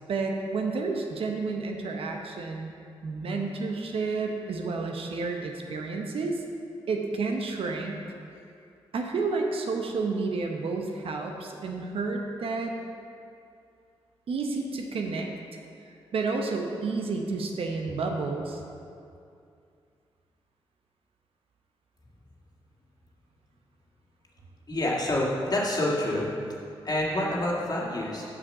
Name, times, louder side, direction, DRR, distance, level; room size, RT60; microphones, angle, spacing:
voice 1, 0.1-2.7 3.0-6.4 6.9-8.0 8.9-12.8 14.3-15.3 15.9-18.6, right 3 dB, 70° right, 2 dB, 0.9 m, -30 dB
voice 2, 24.7-26.3 26.8-28.2, left 1 dB, 40° left, -4 dB, 1.9 m, -27 dB
6.8 x 5.5 x 5.5 m, 2.5 s
cardioid pair, 55°, 10 cm